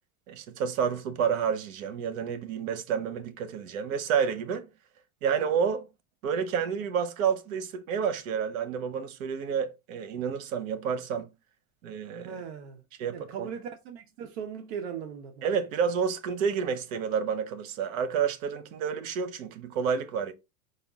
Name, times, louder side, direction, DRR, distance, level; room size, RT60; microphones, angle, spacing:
voice 1, 0.3-4.6 5.2-5.8 6.2-11.3 11.8-12.4 13.0-13.5 15.4-20.3, right 7 dB, 75° right, 0.9 m, -29 dB
voice 2, 12.2-12.8 13.1-15.4, right 7 dB, 55° right, 0.7 m, -39 dB
4.9 x 2.3 x 3.5 m
supercardioid pair, 175°, 40 cm